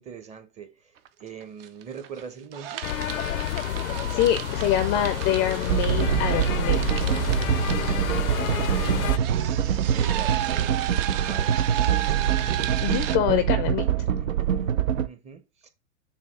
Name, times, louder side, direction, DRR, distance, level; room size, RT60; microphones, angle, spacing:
voice 1, 0.0-2.9 7.9-9.2 9.9-10.8 11.2-12.2 14.2-14.5 15.0-15.7, right 6 dB, 15° right, 0.9 m, -42 dB
sound 1, 1.0-1.1 1.4-2.2 2.5-13.2, right 12 dB, 45° right, 0.7 m, -34 dB
sound 2, 2.8-9.2, left 12 dB, 85° left, 0.5 m, -29 dB
voice 2, 4.1-6.8 12.8-14.1, left 11 dB, 25° left, 0.4 m, -25 dB
sound 3, 5.7-15.1, right 9 dB, 75° right, 0.8 m, -24 dB
7.0 x 2.7 x 5.4 m
hypercardioid pair, 115°, 40 cm